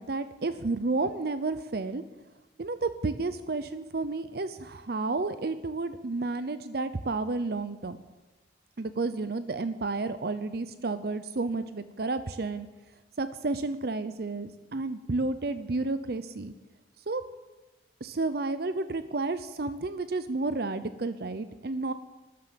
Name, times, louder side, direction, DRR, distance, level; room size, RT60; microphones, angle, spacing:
voice 1, 0.0-2.0 2.6-8.0 8.8-12.7 13.2-16.5 17.1-17.2 18.0-21.9, right 3 dB, 60° right, 12 dB, 0.6 m, -31 dB
13.0 x 11.5 x 7.6 m, 1.2 s
head